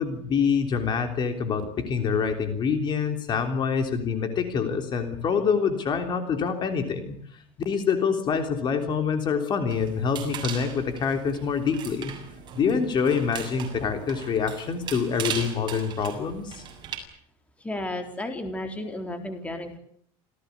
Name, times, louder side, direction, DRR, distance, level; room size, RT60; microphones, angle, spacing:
voice 1, 0.0-7.4 7.7-12.1 12.6-16.6, left 6 dB, 35° left, 7 dB, 3.4 m, -26 dB
sound 1, 9.7-17.0, right 7 dB, 35° right, 7.0 m, -38 dB
voice 2, 17.6-19.8, left 1 dB, 10° left, 6 dB, 3.9 m, -33 dB
28.0 x 17.5 x 9.5 m, 0.64 s
cardioid pair, 155°, 14 cm